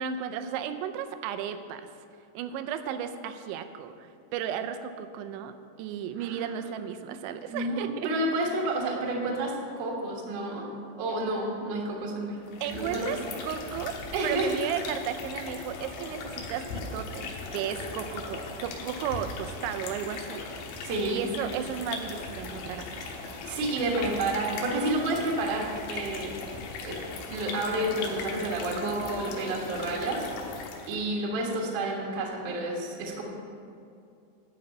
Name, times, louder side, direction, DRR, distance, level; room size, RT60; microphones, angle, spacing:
voice 1, 0.0-2.1 2.3-8.1 12.6-20.5 21.1-23.1, right 9 dB, 85° right, 9 dB, 2.9 m, -34 dB
voice 2, 7.5-10.7 11.0-12.4 12.7-13.1 14.1-14.5 20.8-21.2 23.4-26.4 26.8-27.0 27.3-33.2, right 2 dB, 60° right, -2 dB, 2.3 m, -30 dB
sound 1, 12.4-31.1, left 4 dB, 85° left, 3.5 m, -38 dB
11.5 x 5.4 x 8.0 m, 2.4 s
omnidirectional pair, 5.3 m